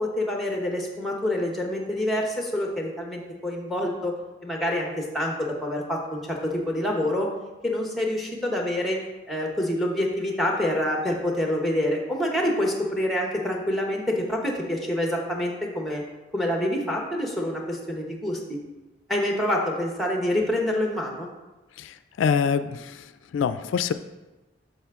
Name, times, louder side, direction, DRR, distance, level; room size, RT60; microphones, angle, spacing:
voice 1, 0.0-7.3 7.6-9.0 9.3-16.0 16.3-18.6 19.1-21.3, left 1 dB, ahead, 1 dB, 0.9 m, -27 dB
voice 2, 21.8-23.9, left 6 dB, 90° left, 11 dB, 0.3 m, -26 dB
7.2 x 5.7 x 3.6 m, 1.1 s
head